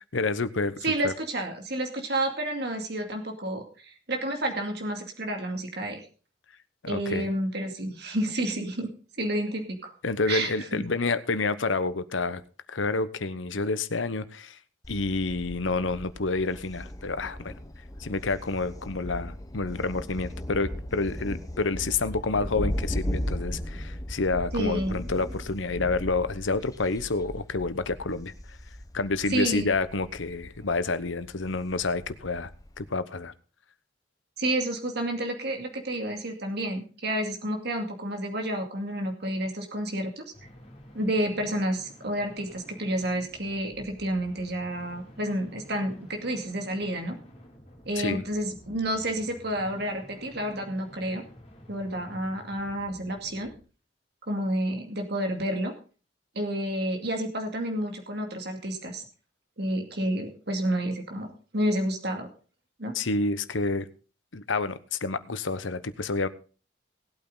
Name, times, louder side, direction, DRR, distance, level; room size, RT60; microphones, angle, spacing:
voice 1, 0.1-0.7 1.0-1.1 6.8-7.3 10.0-12.4 12.7-14.6 14.9-17.5 18.0-28.3 28.9-32.5 32.8-33.3 48.0-48.2 62.9-63.9 64.3-66.3, left 3 dB, 85° left, 13 dB, 1.0 m, -29 dB
voice 2, 0.8-6.0 6.9-8.9 9.2-9.9 10.3-10.8 24.5-24.9 29.3-29.7 34.4-40.2 40.9-47.2 47.9-51.2 51.7-53.5 54.3-55.7 56.4-59.0 59.6-62.3 62.8-62.9, right 1 dB, 60° right, 3 dB, 2.4 m, -30 dB
Thunder, 14.8-32.9, equal, 20° left, 1.0 m, -37 dB
sound 1, 40.3-53.6, equal, 35° left, 4.5 m, -51 dB
18.5 x 8.9 x 3.9 m, 0.37 s
head